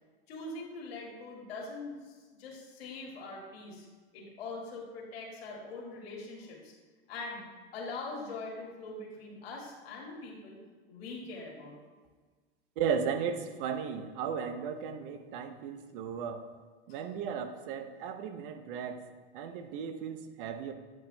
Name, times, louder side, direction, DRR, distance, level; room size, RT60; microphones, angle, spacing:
voice 1, 0.3-3.9 4.1-6.7 7.1-7.4 7.7-10.6 10.9-11.8 16.9-17.0, left 3 dB, 80° left, -2 dB, 1.8 m, -42 dB
voice 2, 12.8-16.4 16.9-19.0 19.3-20.7, right 7 dB, 60° right, 8 dB, 0.7 m, -35 dB
8.8 x 6.0 x 2.2 m, 1.4 s
hypercardioid pair, 120°, 30 cm